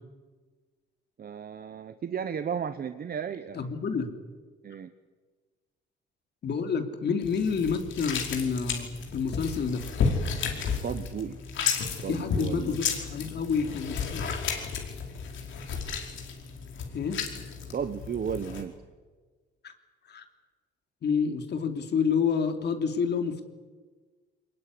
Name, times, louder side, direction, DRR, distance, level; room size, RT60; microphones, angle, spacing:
voice 1, 1.2-3.6 4.6-4.9 10.8-11.4 12.0-12.8 17.7-18.7, right 7 dB, 50° right, 10 dB, 1.2 m, -34 dB
voice 2, 3.5-4.1 6.4-8.9 9.1-9.8 12.1-14.2 16.9-17.2 19.6-19.7 20.1-20.2 21.0-23.5, left 6 dB, 60° left, 6 dB, 3.0 m, -28 dB
sound 1, 7.2-18.6, left 6 dB, 75° left, 5.0 m, -33 dB
23.0 x 20.5 x 9.7 m, 1.4 s
cardioid pair, 90°, 20 cm